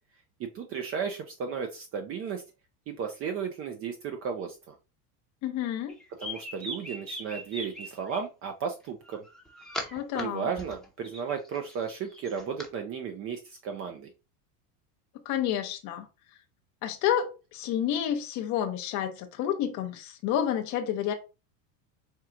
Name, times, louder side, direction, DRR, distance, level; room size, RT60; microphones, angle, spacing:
voice 1, 0.4-2.4 2.9-4.7 6.2-9.2 10.2-14.1, right 6 dB, 30° right, 0.5 m, -34 dB
voice 2, 5.4-6.0 9.9-10.5 15.3-16.1 16.8-21.1, left 10 dB, 40° left, 0.6 m, -29 dB
sound 1, 5.9-8.2 9.1-10.2 10.6-12.7, equal, ahead, 0.8 m, -40 dB
4.5 x 2.3 x 3.7 m
supercardioid pair, 120°, 47 cm